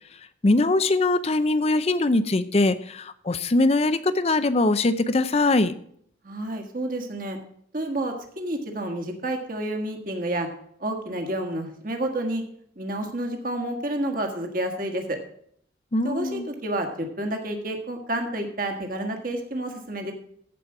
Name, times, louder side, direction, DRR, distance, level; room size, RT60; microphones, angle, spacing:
voice 1, 0.4-5.8 15.9-16.5, left 2 dB, 30° left, 13 dB, 0.5 m, -22 dB
voice 2, 6.2-7.4 7.7-10.5 10.8-12.4 12.8-15.2 16.0-20.1, right 1 dB, 45° right, 4 dB, 1.6 m, -29 dB
14.5 x 5.1 x 5.9 m, 0.67 s
head